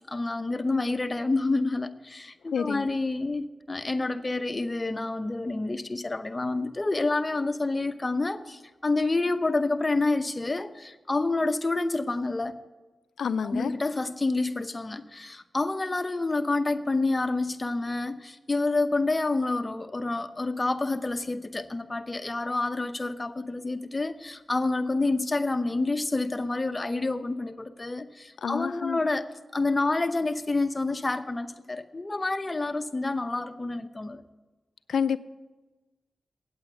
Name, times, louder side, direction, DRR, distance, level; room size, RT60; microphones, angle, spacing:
voice 1, 0.1-12.6 13.4-29.3 29.5-34.2, left 2 dB, 35° left, 9 dB, 0.8 m, -28 dB
voice 2, 2.5-2.9 13.2-13.7 28.4-29.0 34.9-35.2, left 7 dB, 85° left, 15 dB, 0.4 m, -28 dB
8.6 x 8.6 x 7.9 m, 1.2 s
cardioid pair, 40°, 0 cm